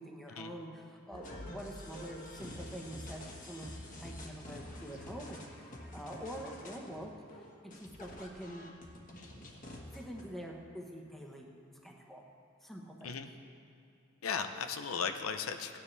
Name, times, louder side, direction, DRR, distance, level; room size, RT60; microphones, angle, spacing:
voice 1, 0.0-7.1 7.4-7.5 7.8-8.7 9.9-11.5 11.8-12.2 12.6-13.2, equal, ahead, -1 dB, 1.0 m, -46 dB
sound 1, 1.1-10.2, left 1 dB, 40° left, 1.3 m, -48 dB
voice 2, 14.2-15.8, left 6 dB, 85° left, 7 dB, 0.6 m, -36 dB
17.0 x 9.8 x 3.3 m, 2.7 s
head